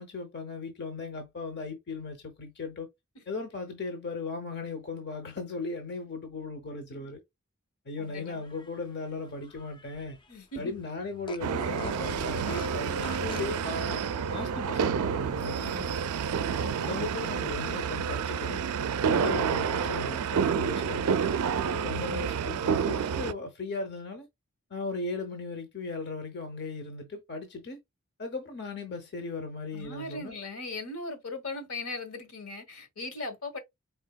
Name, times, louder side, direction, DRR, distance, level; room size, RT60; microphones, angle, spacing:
voice 1, 0.0-2.9 3.3-7.2 7.9-10.2 10.6-15.6 16.8-18.6 19.1-21.1 21.8-24.3 24.7-27.8 28.2-30.4, left 3 dB, 50° left, 0.7 m, -37 dB
voice 2, 8.0-8.4 10.3-10.8 15.6-15.9 21.6-22.0 29.7-33.6, left 2 dB, 70° left, 1.1 m, -39 dB
Fart, 8.3-10.3 10.6-10.7 11.2-13.6, left 1 dB, 20° left, 0.4 m, -44 dB
sound 1, 11.4-23.3, right 6 dB, 80° right, 0.4 m, -29 dB
4.5 x 3.5 x 2.3 m
head